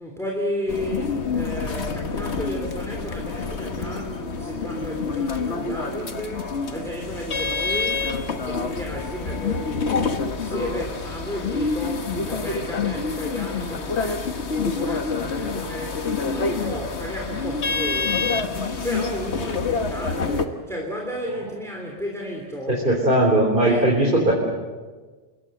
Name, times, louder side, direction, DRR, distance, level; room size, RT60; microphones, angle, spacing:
voice 1, 0.0-18.6 18.8-22.9 23.7-23.9, equal, 5° left, 0 dB, 3.3 m, -33 dB
sound 1, 0.7-20.5, left 4 dB, 90° left, 1.7 m, -27 dB
voice 2, 22.7-24.3, right 1 dB, 50° right, -2 dB, 4.5 m, -19 dB
28.5 x 21.5 x 7.9 m, 1.3 s
omnidirectional pair, 1.1 m